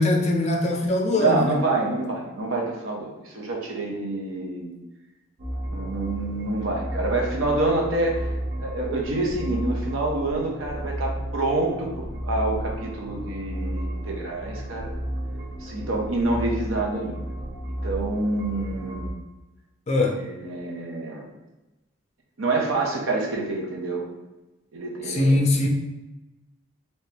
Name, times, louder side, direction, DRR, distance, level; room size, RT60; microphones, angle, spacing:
voice 1, 0.0-1.6 19.9-20.2 25.0-25.7, left 2 dB, 35° left, 0 dB, 0.5 m, -21 dB
voice 2, 1.1-4.7 5.7-8.3 8.6-14.9 15.6-17.3 17.7-19.1 20.1-21.3 22.4-24.1 24.7-25.4, right 2 dB, 90° right, -1 dB, 0.8 m, -27 dB
sound 1, 5.4-19.1, right 1 dB, 45° right, 0.8 m, -32 dB
3.4 x 2.9 x 2.9 m, 1.0 s
head